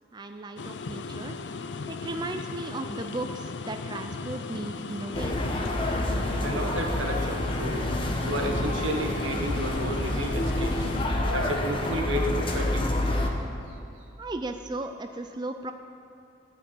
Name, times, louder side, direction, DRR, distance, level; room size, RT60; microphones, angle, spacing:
voice 1, 0.1-1.4 1.9-5.5 14.2-15.7, right 2 dB, 20° right, 6 dB, 0.4 m, -36 dB
sound 1, 0.6-11.1, left 4 dB, 60° left, 0.5 m, -37 dB
sound 2, 5.1-13.3, left 1 dB, 25° left, 1.0 m, -28 dB
voice 2, 6.4-7.9 8.2-10.9 11.3-12.8, right 1 dB, 85° right, 2 dB, 1.4 m, -32 dB
12.0 x 6.0 x 8.6 m, 2.6 s
head